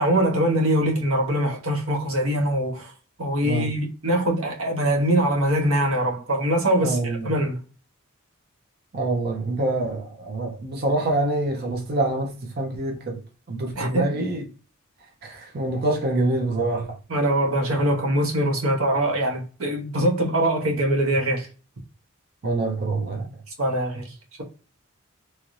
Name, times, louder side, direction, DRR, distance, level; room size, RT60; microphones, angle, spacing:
voice 1, 0.0-2.9 3.2-7.6 13.7-14.2 17.1-21.5 23.6-24.0, right 1 dB, 85° right, 1.0 m, -23 dB
voice 2, 6.8-7.3 8.9-13.2 13.5-14.4 15.2-16.9 17.7-17.8 22.4-23.3, right 2 dB, 50° right, 0.6 m, -26 dB
2.9 x 2.6 x 3.0 m
head